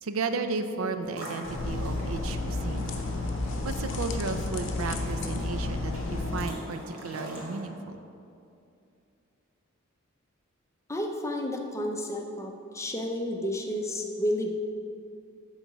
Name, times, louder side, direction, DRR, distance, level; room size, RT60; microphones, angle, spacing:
voice 1, 0.0-2.9 3.6-8.0, right 4 dB, 70° right, 8 dB, 0.5 m, -34 dB
sound 1, 1.0-7.6, right 1 dB, 90° right, 2.0 m, -42 dB
sound 2, 1.4-6.4, left 2 dB, 60° left, 0.7 m, -32 dB
voice 2, 10.9-14.5, left 1 dB, 15° left, 2 dB, 0.6 m, -31 dB
8.5 x 4.0 x 6.0 m, 2.6 s
head